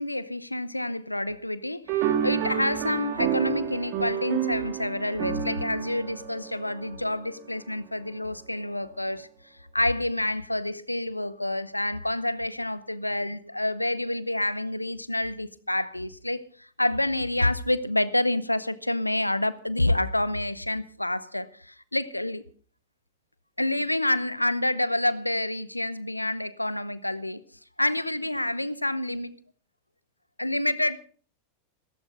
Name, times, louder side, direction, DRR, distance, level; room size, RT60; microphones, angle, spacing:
voice 1, 0.0-9.3 9.7-22.4 23.6-27.4 27.8-29.3 30.4-31.0, left 1 dB, 85° left, 0.8 m, -28 dB
sound 1, 1.9-7.4, right 10 dB, 45° right, 3.2 m, -30 dB
16.0 x 14.5 x 5.0 m
figure-of-eight pair, 90°, 0 cm